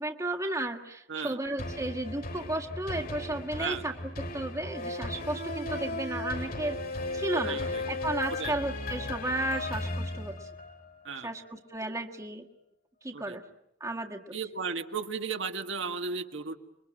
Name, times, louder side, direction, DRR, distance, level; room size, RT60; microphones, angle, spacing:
voice 1, 0.0-6.8 7.1-10.5 11.2-12.5 13.0-13.4 13.8-14.5, right 1 dB, 15° right, 2 dB, 1.6 m, -34 dB
sound 1, 1.6-11.0 11.4-11.5, left 2 dB, 50° left, 3.3 m, -36 dB
voice 2, 7.3-7.8 8.4-8.5 11.1-11.3 13.1-13.4 14.3-16.6, right 5 dB, 75° right, 6 dB, 1.9 m, -35 dB
28.5 x 22.5 x 8.9 m, 0.81 s
head